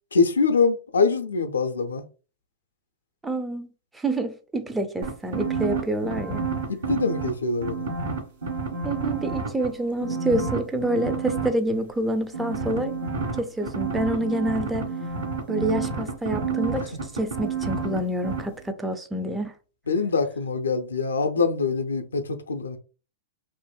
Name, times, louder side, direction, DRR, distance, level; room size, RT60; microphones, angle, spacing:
voice 1, 0.1-2.0 6.7-7.9 19.9-22.8, left 4 dB, 85° left, 0.4 m, -24 dB
voice 2, 3.2-3.7 3.9-6.5 8.8-13.0 13.4-14.9 15.5-19.5, right 1 dB, 10° right, 0.4 m, -27 dB
sound 1, 5.0-7.3 7.6-9.7 10.0-11.5 12.3-18.0 18.2-18.4, right 4 dB, 75° right, 1.1 m, -29 dB
2.6 x 2.4 x 2.2 m
hypercardioid pair, 110°, 0 cm